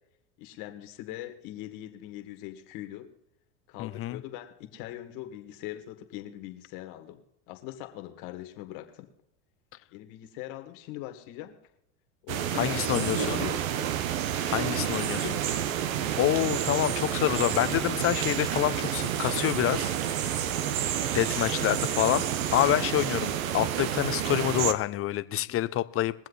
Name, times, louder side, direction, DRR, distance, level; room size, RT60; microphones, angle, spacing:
voice 1, 0.4-3.1 3.7-7.2 7.5-9.1 9.9-11.6 12.2-13.9 14.6-15.4 25.3-25.6, left 14 dB, 60° left, 2.1 m, -41 dB
voice 2, 3.8-4.2 12.5-13.4 14.5-15.2 16.2-20.5 21.1-22.2 22.5-26.1, left 14 dB, 35° left, 0.7 m, -27 dB
sound 1, 12.3-24.7, right 10 dB, 80° right, 1.2 m, -29 dB
22.5 x 7.5 x 4.1 m
supercardioid pair, 110°, 40 cm